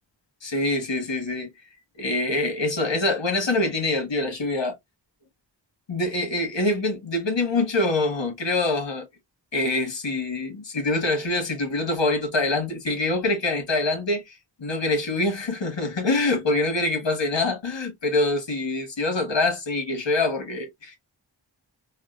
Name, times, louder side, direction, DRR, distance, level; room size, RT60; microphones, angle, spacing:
voice 1, 0.4-1.7 2.0-4.8 5.9-9.0 9.5-21.0, left 2 dB, 70° left, 1.6 m, -25 dB
4.1 x 2.3 x 2.5 m
cardioid pair, 50°, 45 cm